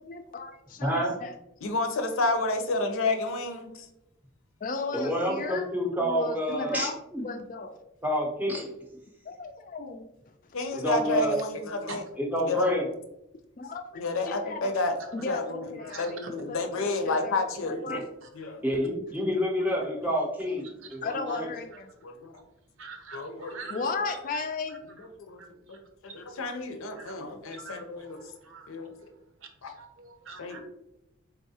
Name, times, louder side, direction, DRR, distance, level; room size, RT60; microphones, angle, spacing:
voice 1, 0.0-1.4 4.6-5.7 6.0-7.0 7.2-7.8 9.2-10.1 13.6-14.7 15.1-16.2 16.5-18.0 21.0-21.9 23.7-24.8 27.2-27.4, left 4 dB, 40° left, 8 dB, 0.3 m, -35 dB
voice 2, 0.8-1.1 4.9-7.3 8.0-8.9 10.7-11.4 11.7-11.8 12.2-12.9 17.9-18.0 18.6-20.6 20.9-21.5, equal, 10° right, 0 dB, 0.6 m, -28 dB
voice 3, 1.6-3.9 10.5-12.0 12.4-12.7 13.9-15.7 16.0-17.8 18.4-18.6 22.0-22.3 23.1-23.8 25.0-25.4 26.0-28.2 28.7-28.9 29.6-29.8 30.4-30.6, left 3 dB, 85° left, 6 dB, 0.6 m, -30 dB
voice 4, 15.8-16.1 20.6-20.7 22.8-23.9 24.3-24.4 25.7-25.8 26.4-26.5 26.9-27.1 27.5-28.7 29.4-30.6, right 4 dB, 75° right, 4 dB, 0.7 m, -44 dB
3.8 x 3.5 x 2.7 m, 0.86 s
head